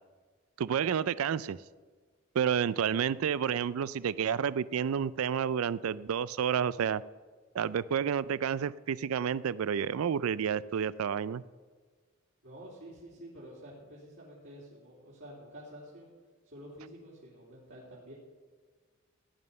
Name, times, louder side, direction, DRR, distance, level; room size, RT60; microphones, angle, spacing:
voice 1, 0.6-1.6 2.3-7.0 7.5-11.4, right 8 dB, 85° right, 19 dB, 0.4 m, -30 dB
voice 2, 12.4-16.1 16.4-18.1, equal, 60° right, -8 dB, 3.2 m, -49 dB
16.5 x 9.6 x 5.5 m, 1.5 s
head